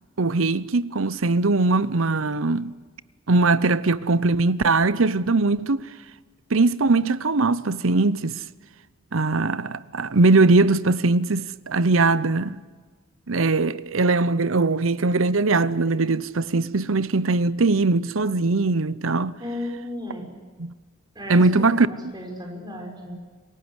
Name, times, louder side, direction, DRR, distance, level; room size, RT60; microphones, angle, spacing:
voice 1, 0.2-2.7 3.3-5.9 6.5-8.4 9.1-12.6 13.3-19.4 20.6-20.7 21.3-22.1, right 3 dB, 75° right, 0.8 m, -21 dB
voice 2, 19.4-20.3 21.2-21.5 21.9-23.1, left 1 dB, 20° right, 5.7 m, -34 dB
28.5 x 18.0 x 8.2 m
head